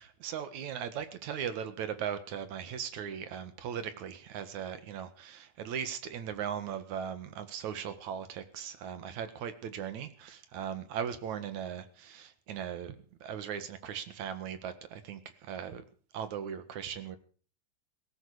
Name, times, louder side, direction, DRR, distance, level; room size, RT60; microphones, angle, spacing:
voice 1, 0.0-13.0 13.2-15.8 16.1-17.2, right 8 dB, 60° right, 11 dB, 2.7 m, -38 dB
18.0 x 16.0 x 5.0 m, 0.41 s
omnidirectional pair, 4.0 m